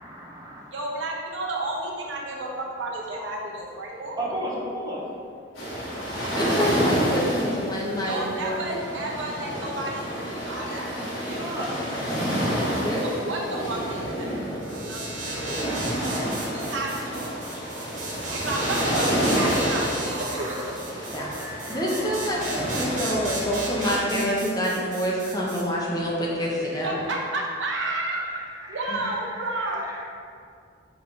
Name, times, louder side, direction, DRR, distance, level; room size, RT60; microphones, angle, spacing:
voice 1, 0.0-0.7 4.2-5.0 11.0-12.6 15.2-15.6 15.9-16.0 17.0-18.3 19.7-20.7 21.0-22.4 27.7-27.8 28.2-30.0, right 1 dB, 20° right, -6 dB, 1.3 m, -37 dB
voice 2, 0.7-4.2 6.3-7.0 8.1-10.9 11.2-11.4 13.2-15.0 15.4-15.5 16.0-17.3 18.3-20.8 26.2-26.3 26.8-28.2 28.7-29.8, right 2 dB, 70° right, -2 dB, 1.0 m, -32 dB
sound 1, 5.6-24.0, equal, 85° left, 1.5 m, -29 dB
voice 3, 6.3-8.6 12.8-13.0 21.1-21.3 21.7-27.0 28.9-29.0, equal, 20° left, -4 dB, 0.9 m, -27 dB
sound 2, 14.6-25.6, right 2 dB, 40° right, 1.0 m, -35 dB
4.9 x 3.8 x 5.5 m, 2.3 s
head